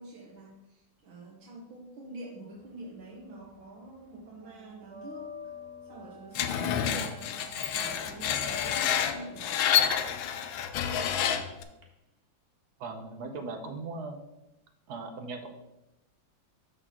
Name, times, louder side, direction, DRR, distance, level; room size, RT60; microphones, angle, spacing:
voice 1, 0.0-5.3 5.8-7.4 7.7-9.7, right 2 dB, 90° right, -4 dB, 2.0 m, -46 dB
sound 1, 2.6-3.7 3.9-11.8, left 5 dB, 40° right, 0.9 m, -47 dB
Screech, 6.4-11.6, left 9 dB, 80° left, 1.4 m, -28 dB
voice 2, 12.8-14.2 14.9-15.5, right 3 dB, 60° right, 5 dB, 1.2 m, -38 dB
12.5 x 4.3 x 2.9 m, 0.92 s
omnidirectional pair, 2.1 m